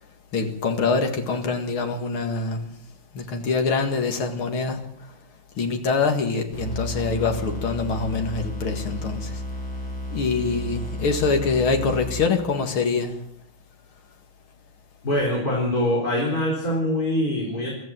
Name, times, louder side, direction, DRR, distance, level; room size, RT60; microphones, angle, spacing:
voice 1, 0.3-2.7 3.1-5.1 5.6-9.4 10.1-13.2, left 4 dB, 90° left, 2.9 m, -25 dB
sound 1, 6.5-12.6, left 1 dB, 65° left, 7.8 m, -33 dB
voice 2, 15.0-17.7, left 1 dB, 45° left, 4.9 m, -23 dB
24.0 x 15.0 x 7.7 m
omnidirectional pair, 2.3 m